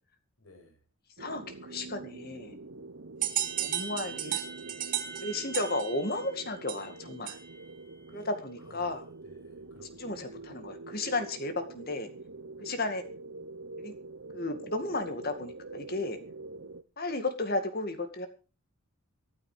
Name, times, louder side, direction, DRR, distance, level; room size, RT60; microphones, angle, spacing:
voice 1, 0.4-0.8 8.1-8.3 8.6-10.3, left 2 dB, 85° left, 5 dB, 6.3 m, -59 dB
voice 2, 1.2-2.6 3.6-4.4 5.2-7.4 8.1-9.1 10.0-12.1 12.6-13.0 13.8-14.0 14.3-16.2 17.0-18.3, left 2 dB, 45° left, 8 dB, 2.2 m, -34 dB
sound 1, 1.2-16.8, right 3 dB, 65° right, 1.0 m, -46 dB
sound 2, 3.2-7.7, right 10 dB, 40° right, 2.3 m, -35 dB
14.0 x 13.0 x 5.0 m, 0.34 s
head